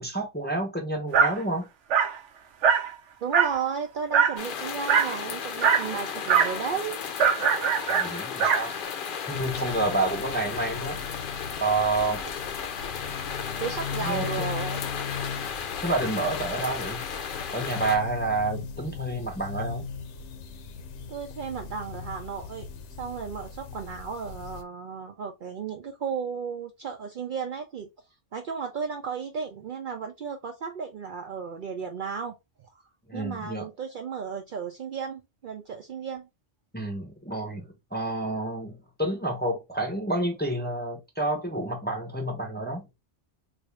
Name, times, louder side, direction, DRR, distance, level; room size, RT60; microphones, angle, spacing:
voice 1, 0.0-1.7 7.8-8.7 9.3-11.0 11.6-12.3 14.0-14.5 15.8-17.0 17.5-19.9 33.1-33.6 36.7-42.9, right 2 dB, 10° left, 0.6 m, -29 dB
Dog, 1.1-1.4 1.9-2.2 2.6-2.9 3.3-3.6 4.1-4.4 4.9-5.2 5.6-5.9 6.3-6.6 7.2-8.7, right 7 dB, 90° right, 1.0 m, -22 dB
voice 2, 3.2-7.0 13.6-14.8 21.1-22.7 23.0-27.9 28.3-36.3, right 6 dB, 60° right, 0.6 m, -34 dB
sound 1, 4.4-18.0, left 7 dB, 55° left, 0.6 m, -34 dB
sound 2, 9.3-24.6, left 6 dB, 85° left, 0.9 m, -39 dB
3.4 x 2.5 x 3.1 m
omnidirectional pair, 1.2 m